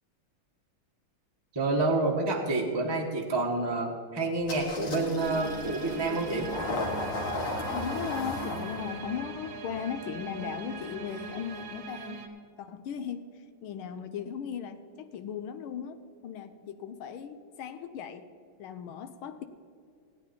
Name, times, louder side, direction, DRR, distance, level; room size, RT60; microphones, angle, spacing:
voice 1, 1.5-6.5, right 2 dB, 15° right, 0 dB, 0.9 m, -28 dB
Engine starting, 4.5-11.8, left 2 dB, 65° left, 2.3 m, -37 dB
sound 1, 5.2-12.3, right 5 dB, 80° right, 2.0 m, -41 dB
voice 2, 7.7-12.2 12.6-13.3 13.6-16.0 16.2-18.3 18.6-19.4, left 8 dB, 85° left, 9 dB, 1.5 m, -37 dB
17.5 x 9.8 x 4.2 m, 2.3 s
omnidirectional pair, 2.3 m